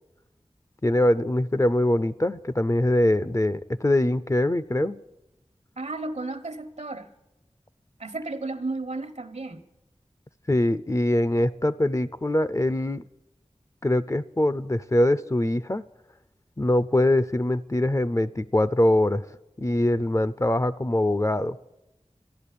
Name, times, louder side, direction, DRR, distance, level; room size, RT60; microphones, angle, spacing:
voice 1, 0.8-5.0 10.5-13.0 13.8-15.8 16.6-19.2 19.6-21.6, left 1 dB, 25° left, 14 dB, 0.5 m, -23 dB
voice 2, 5.8-7.1 8.0-9.6, right 2 dB, 75° right, 9 dB, 1.2 m, -33 dB
14.0 x 11.0 x 8.4 m, 0.91 s
wide cardioid pair, 55°, 12 cm